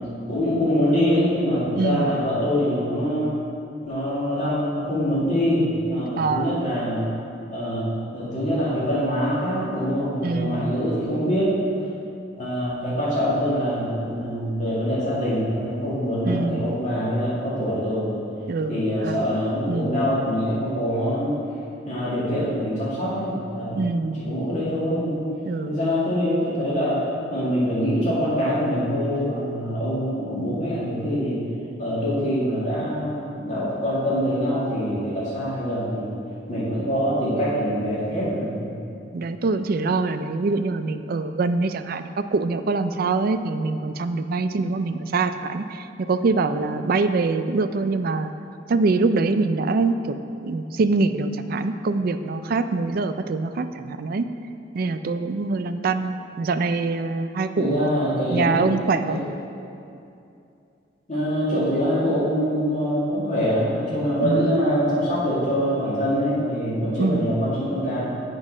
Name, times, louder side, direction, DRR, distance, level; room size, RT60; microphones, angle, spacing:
voice 1, 0.3-3.4 3.9-7.0 7.5-11.6 12.4-18.2 18.7-21.4 21.9-25.3 25.7-31.4 31.8-36.1 36.5-38.7 57.6-58.7 59.1-59.2 61.1-68.0, equal, 40° left, -9 dB, 2.1 m, -24 dB
voice 2, 1.7-2.2 6.2-6.7 10.2-10.7 16.3-16.8 18.5-19.3 19.7-20.1 23.7-24.3 25.5-25.9 39.1-48.3 48.7-50.2 50.4-54.3 54.7-57.9 58.3-59.2 64.2-64.6 67.0-67.4, right 3 dB, 55° right, 9 dB, 0.4 m, -24 dB
7.6 x 5.3 x 6.1 m, 2.6 s
head